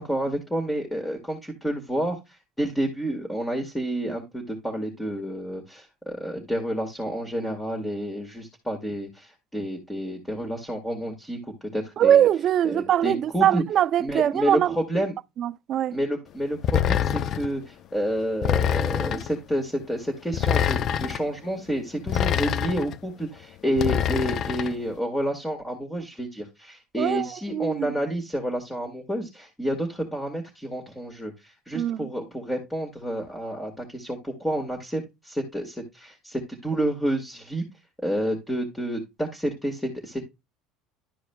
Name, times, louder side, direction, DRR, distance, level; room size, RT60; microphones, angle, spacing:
voice 1, 0.0-11.4 11.7-12.2 12.6-13.6 14.0-15.1 15.9-37.6 38.0-40.2, equal, 10° left, 1.8 m, -29 dB
voice 2, 12.0-14.8 15.4-16.0 27.0-28.0 31.7-32.1, right 10 dB, 50° right, 0.4 m, -22 dB
sound 1, 16.6-17.5 18.4-19.3 20.3-21.2 22.1-23.0 23.8-24.7, left 9 dB, 50° left, 0.5 m, -25 dB
12.0 x 4.8 x 2.2 m
supercardioid pair, 95°, 0 cm